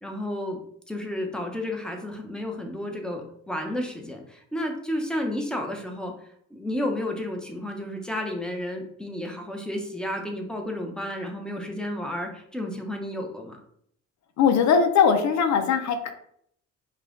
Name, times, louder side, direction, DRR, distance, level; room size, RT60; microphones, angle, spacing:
voice 1, 0.0-0.6 0.9-6.1 6.5-13.6, left 1 dB, 5° left, 2 dB, 1.0 m, -32 dB
voice 2, 14.4-16.1, left 6 dB, 65° left, 7 dB, 0.8 m, -20 dB
5.5 x 2.5 x 3.9 m, 0.67 s
cardioid pair, 90°, 30 cm